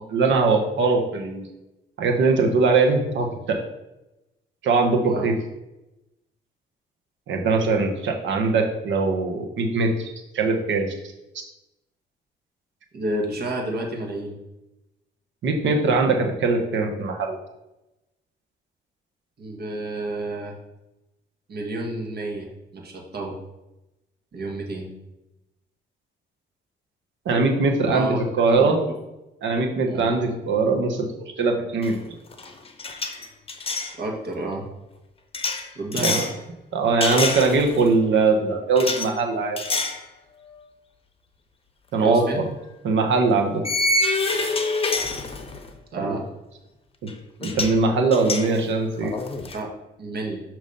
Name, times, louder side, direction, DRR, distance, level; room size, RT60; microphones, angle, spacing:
voice 1, 0.1-1.5 2.0-3.6 4.6-5.3 7.3-10.9 15.4-17.4 27.2-28.8 29.4-32.1 36.0-36.2 36.7-39.6 41.9-42.2 42.8-43.6 46.0-46.2 47.0-47.1 47.4-49.1, right 3 dB, 70° right, 2 dB, 1.3 m, -21 dB
voice 2, 12.9-14.4 19.4-20.6 21.5-23.4 24.3-24.9 27.9-28.2 28.5-29.0 29.9-30.1 34.0-34.6 35.7-36.2 42.0-42.4 45.9-46.2 49.5-49.7 50.0-50.4, right 2 dB, 55° right, 1 dB, 1.7 m, -30 dB
sound 1, 31.8-32.1 32.3-33.9 35.3-36.3 37.0-37.9 38.8-39.1 39.6-40.0 40.5-40.6 42.2-42.3 43.6-45.7 47.1-47.2 47.4-47.8 48.1-49.6, left 3 dB, 30° left, 0.8 m, -26 dB
6.2 x 3.0 x 5.5 m, 0.95 s
cardioid pair, 90°, 20 cm